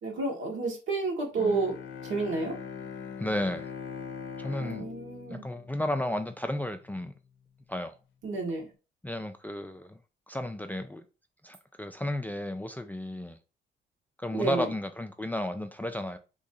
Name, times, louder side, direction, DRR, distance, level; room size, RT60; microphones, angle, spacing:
voice 1, 0.0-1.7 2.0-2.5 4.6-5.4 8.2-8.7 14.3-14.7, right 3 dB, 75° right, 1.5 m, -30 dB
Bowed string instrument, 1.4-6.6, left 6 dB, 70° left, 0.5 m, -41 dB
voice 2, 3.2-3.7 4.4-4.8 5.3-7.1 7.7-7.9 9.0-10.0 10.3-11.0 11.4-13.4 14.2-16.2, left 1 dB, 10° left, 0.3 m, -33 dB
3.0 x 2.6 x 3.8 m
cardioid pair, 90°, 20 cm